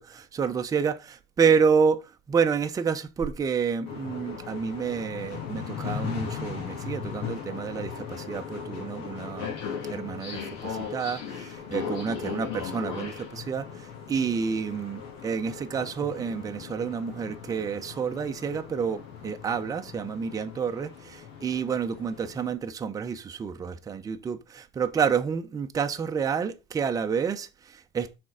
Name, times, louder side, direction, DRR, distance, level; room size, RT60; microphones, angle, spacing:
voice 1, 0.0-9.5 9.9-28.1, right 6 dB, 25° right, 0.7 m, -29 dB
sound 1, 3.9-22.5, left 7 dB, 70° left, 2.2 m, -38 dB
6.2 x 4.4 x 4.9 m
supercardioid pair, 105°, 15 cm